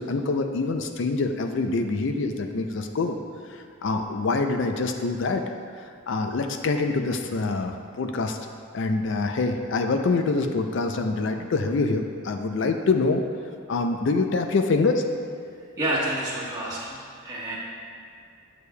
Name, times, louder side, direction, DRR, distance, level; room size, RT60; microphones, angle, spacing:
voice 1, 0.0-3.2 3.5-5.4 5.8-8.4 8.7-13.2 13.7-15.0, left 3 dB, 55° left, 6 dB, 0.4 m, -25 dB
voice 2, 15.8-17.6, right 1 dB, 15° right, -9 dB, 1.2 m, -29 dB
6.8 x 6.4 x 2.2 m, 2.4 s
head